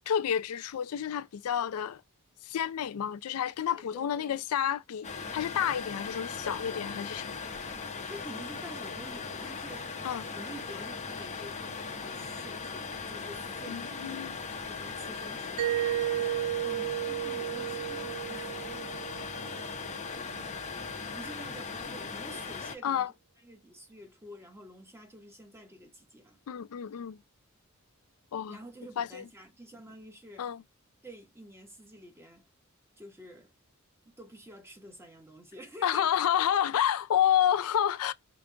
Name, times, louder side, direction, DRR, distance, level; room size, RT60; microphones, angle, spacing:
voice 1, 0.1-2.0 2.4-7.4 10.0-10.2 13.7-14.3 22.8-23.1 26.5-27.2 28.3-28.6 29.0-29.3 30.4-30.6 35.8-38.1, left 9 dB, 75° left, 0.4 m, -29 dB
voice 2, 3.7-4.4 8.0-9.9 10.3-16.3 16.6-19.3 21.1-23.1 23.4-26.4 28.5-30.5 31.0-32.4 33.0-33.5 34.0-36.2, right 1 dB, 10° right, 1.1 m, -49 dB
sound 1, 5.0-22.8, left 4 dB, 35° left, 0.8 m, -39 dB
Mallet percussion, 15.6-20.2, right 12 dB, 90° right, 0.4 m, -33 dB
5.1 x 2.3 x 3.4 m
head